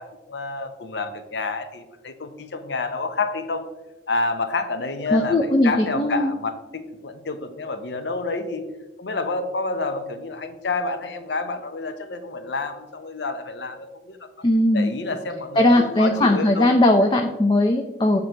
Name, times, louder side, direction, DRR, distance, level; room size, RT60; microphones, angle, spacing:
voice 1, 0.0-3.6 4.1-8.6 9.0-14.2 14.7-16.7, left 3 dB, 80° left, 9 dB, 0.7 m, -29 dB
voice 2, 5.1-6.3 14.4-14.9 15.6-18.2, left 1 dB, 25° left, 4 dB, 0.4 m, -19 dB
7.8 x 3.9 x 4.4 m, 1.1 s
head